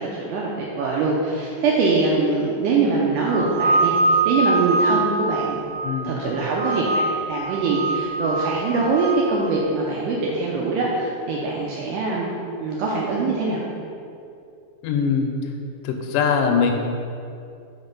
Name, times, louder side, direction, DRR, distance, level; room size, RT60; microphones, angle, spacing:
voice 1, 0.0-5.6 6.0-7.0 7.3-12.3 12.6-13.6, right 3 dB, 85° right, -3 dB, 1.9 m, -23 dB
sound 1, 3.3-6.2 6.5-7.3 7.7-9.2, right 3 dB, 55° right, 2.4 m, -23 dB
voice 2, 5.8-6.2 14.8-15.3 15.8-16.7, left 6 dB, 80° left, 2 dB, 1.9 m, -21 dB
5.2 x 4.0 x 5.2 m, 2.5 s
omnidirectional pair, 4.2 m